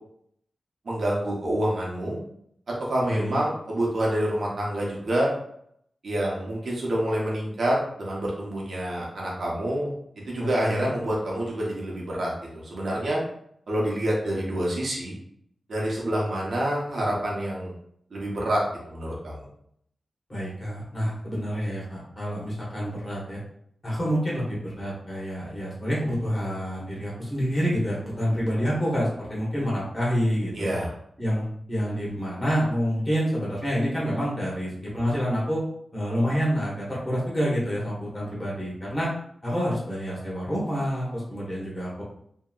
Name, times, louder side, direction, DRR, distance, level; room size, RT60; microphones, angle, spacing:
voice 1, 0.8-2.2 2.9-5.3 6.0-9.9 10.3-13.2 13.7-15.2 15.7-17.7 18.1-19.5 30.5-30.9, right 1 dB, 55° right, -4 dB, 0.8 m, -27 dB
voice 2, 3.1-3.4 10.4-10.9 20.3-23.4 23.8-30.7 31.2-35.6 35.9-39.1 39.4-42.0, equal, 25° left, -6 dB, 1.0 m, -28 dB
2.8 x 2.7 x 2.3 m, 0.69 s
wide cardioid pair, 170°, 0 cm